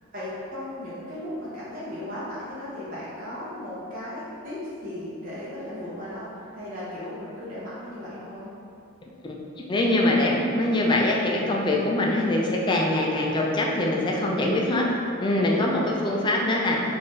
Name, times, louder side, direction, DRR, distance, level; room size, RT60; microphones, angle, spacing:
voice 1, 0.1-8.5 15.6-16.2, left 1 dB, 40° right, -10 dB, 0.9 m, -36 dB
voice 2, 9.2-14.9 15.2-16.8, left 1 dB, 25° left, -1 dB, 0.4 m, -23 dB
3.9 x 2.6 x 3.2 m, 2.6 s
head